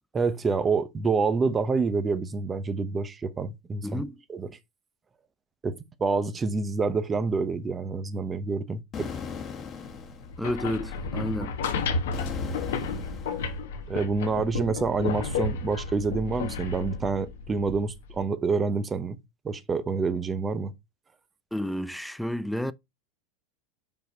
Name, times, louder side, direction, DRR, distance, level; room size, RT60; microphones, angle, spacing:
voice 1, 0.1-4.0 4.3-4.5 5.6-5.7 6.0-9.1 13.9-19.2 19.4-20.7, right 4 dB, 20° right, 0.8 m, -27 dB
voice 2, 3.8-4.2 10.4-11.8 21.5-22.7, equal, ahead, 0.4 m, -31 dB
sound 1, 8.9-10.3 12.1-13.6, left 6 dB, 30° left, 1.4 m, -37 dB
sound 2, 10.2-18.2, left 4 dB, 80° left, 1.2 m, -32 dB
5.4 x 4.8 x 4.4 m
supercardioid pair, 120°, 0 cm